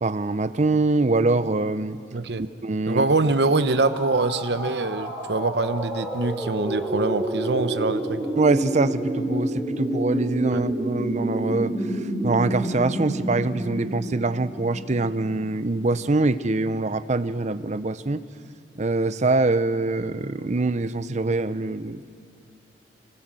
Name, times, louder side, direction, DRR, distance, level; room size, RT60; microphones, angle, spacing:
voice 1, 0.0-2.0 2.4-3.1 8.4-11.7 12.2-18.2 18.7-22.0, right 3 dB, 40° right, 13 dB, 0.7 m, -24 dB
voice 2, 2.1-2.4 2.9-8.2 10.5-10.6, right 3 dB, 65° right, 12 dB, 0.9 m, -24 dB
sound 1, 3.7-15.5, right 1 dB, 5° right, 4.5 m, -29 dB
25.0 x 20.0 x 7.6 m, 2.4 s
head